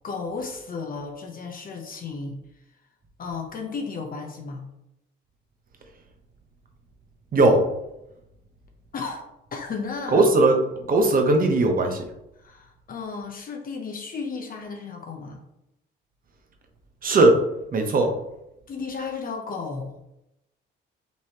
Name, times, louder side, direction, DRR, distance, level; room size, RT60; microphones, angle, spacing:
voice 1, 0.0-2.4 3.2-4.7 8.9-9.2 9.5-10.3 12.4-15.4 18.7-20.0, left 4 dB, 45° left, 3 dB, 0.7 m, -34 dB
voice 2, 7.3-7.6 10.1-12.0 17.0-17.4 17.7-18.1, right 2 dB, 45° right, 4 dB, 0.9 m, -18 dB
5.4 x 3.0 x 2.9 m, 0.87 s
cardioid pair, 90°, 20 cm